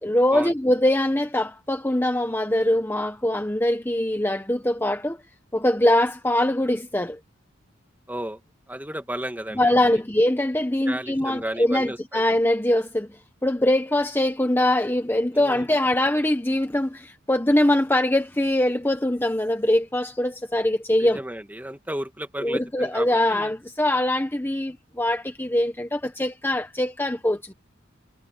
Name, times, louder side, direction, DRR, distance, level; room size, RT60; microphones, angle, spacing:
voice 1, 0.0-5.2 5.5-7.2 9.5-13.1 13.4-21.2 22.4-27.5, left 1 dB, 10° left, 1.1 m, -22 dB
voice 2, 8.1-8.4 8.7-10.0 10.8-12.2 15.3-15.7 21.0-23.5, right 1 dB, 10° right, 1.9 m, -34 dB
head